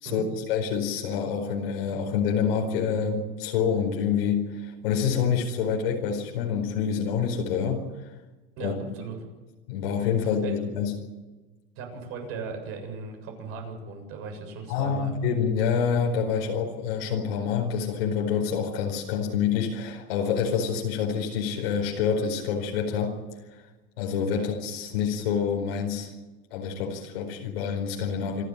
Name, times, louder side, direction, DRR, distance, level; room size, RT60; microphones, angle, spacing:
voice 1, 0.0-7.9 8.6-8.7 9.7-11.0 14.7-23.2 24.0-26.1 26.5-28.4, left 7 dB, 80° left, 1 dB, 4.8 m, -27 dB
voice 2, 8.6-9.2 10.2-10.6 11.8-15.1 24.3-24.5, right 5 dB, 50° right, 3 dB, 7.5 m, -38 dB
27.0 x 12.5 x 10.0 m, 1.2 s
supercardioid pair, 140°, 29 cm